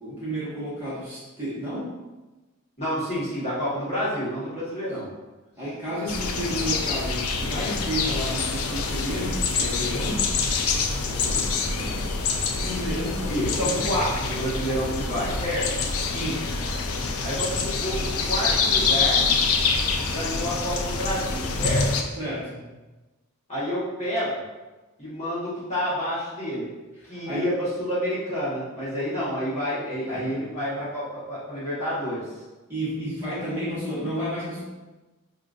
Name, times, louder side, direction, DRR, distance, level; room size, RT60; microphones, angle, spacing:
voice 1, 0.0-1.9 5.5-10.2 11.1-12.1 12.4-13.8 16.1-16.5 22.2-22.6 27.0-27.5 30.1-30.7 32.7-34.6, equal, 10° right, -12 dB, 1.5 m, -32 dB
voice 2, 2.8-5.1 13.3-15.7 17.2-19.2 20.1-21.9 23.5-24.4 25.0-26.7 27.0-32.2, equal, 30° left, -11 dB, 1.5 m, -29 dB
sound 1, 6.1-22.0, left 4 dB, 80° left, 0.4 m, -26 dB
4.9 x 2.6 x 2.5 m, 1.1 s
head